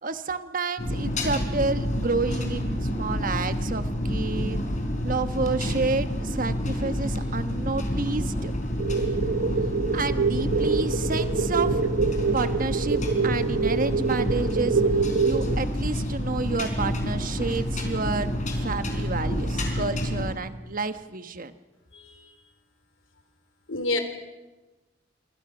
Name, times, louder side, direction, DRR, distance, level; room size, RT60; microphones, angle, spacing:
voice 1, 0.0-4.6 5.0-8.5 9.9-11.8 12.3-14.8 15.2-21.5, right 3 dB, 45° right, 10 dB, 1.2 m, -30 dB
sound 1, 0.8-20.3, equal, 40° left, 4.6 m, -28 dB
sound 2, 8.8-15.6, right 5 dB, 75° right, 0.9 m, -26 dB
voice 2, 21.9-22.3 23.7-24.0, left 2 dB, 85° left, 8 dB, 3.2 m, -28 dB
26.5 x 25.0 x 6.1 m, 1.2 s
head